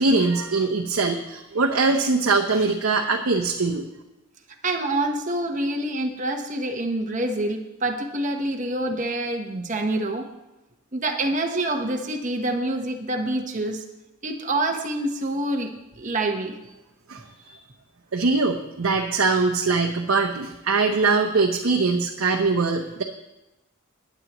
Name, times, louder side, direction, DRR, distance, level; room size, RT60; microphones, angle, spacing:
voice 1, 0.0-3.8 17.1-17.6 18.1-23.0, right 3 dB, 70° right, 2 dB, 0.8 m, -22 dB
voice 2, 4.6-10.3 10.9-13.8 14.2-16.6, right 1 dB, 35° right, 4 dB, 1.0 m, -26 dB
19.0 x 8.2 x 3.0 m, 0.99 s
head